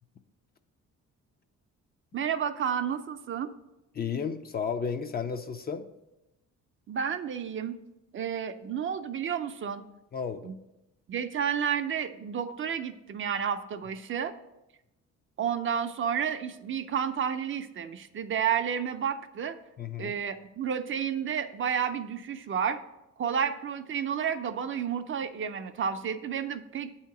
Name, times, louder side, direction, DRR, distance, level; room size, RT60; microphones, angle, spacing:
voice 1, 2.1-3.5 6.9-7.8 8.1-9.8 10.4-10.5 11.1-14.3 15.4-19.6 20.0-22.8 23.2-26.9, right 8 dB, 45° right, 9 dB, 0.4 m, -31 dB
voice 2, 3.9-5.9 10.1-10.5 19.8-20.2, left 6 dB, 35° left, 8 dB, 0.4 m, -33 dB
8.2 x 2.8 x 5.8 m, 0.93 s
cardioid pair, 90°, 30 cm